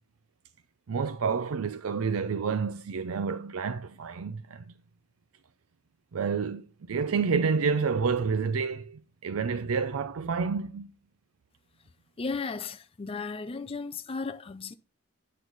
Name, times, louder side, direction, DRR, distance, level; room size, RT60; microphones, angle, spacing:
voice 1, 0.9-4.7 6.1-10.9, right 5 dB, 85° right, 0.5 m, -29 dB
voice 2, 12.2-14.7, left 4 dB, 25° left, 0.5 m, -35 dB
9.8 x 6.3 x 3.9 m
head